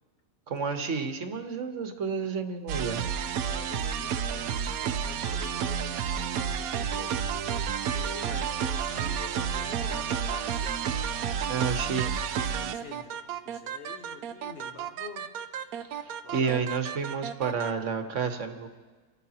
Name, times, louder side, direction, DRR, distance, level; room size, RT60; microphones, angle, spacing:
voice 1, 0.5-3.0 11.5-12.1 15.8-18.7, right 6 dB, 55° right, 6 dB, 1.4 m, -30 dB
sound 1, 2.7-17.7, right 7 dB, 75° right, 1.0 m, -31 dB
voice 2, 3.5-7.4 7.9-10.8 11.5-11.7 12.4-15.3 16.2-16.7, left 3 dB, 40° left, 4 dB, 1.4 m, -46 dB
28.0 x 13.5 x 2.9 m, 1.4 s
omnidirectional pair, 1.6 m